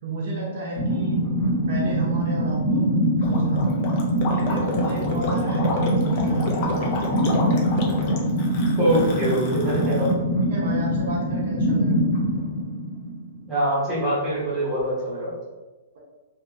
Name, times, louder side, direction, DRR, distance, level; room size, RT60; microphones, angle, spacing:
voice 1, 0.0-1.2 1.7-2.9 3.2-3.9 4.3-6.9 10.4-12.0, right 2 dB, 50° right, -4 dB, 0.7 m, -30 dB
sound 1, 0.8-13.4, equal, 45° left, 1.1 m, -24 dB
Gurgling, 3.2-10.1, left 2 dB, 30° left, 0.4 m, -30 dB
voice 2, 8.8-10.1 13.5-15.3, equal, ahead, -12 dB, 1.1 m, -23 dB
2.7 x 2.7 x 2.4 m, 1.2 s
hypercardioid pair, 180°, 0 cm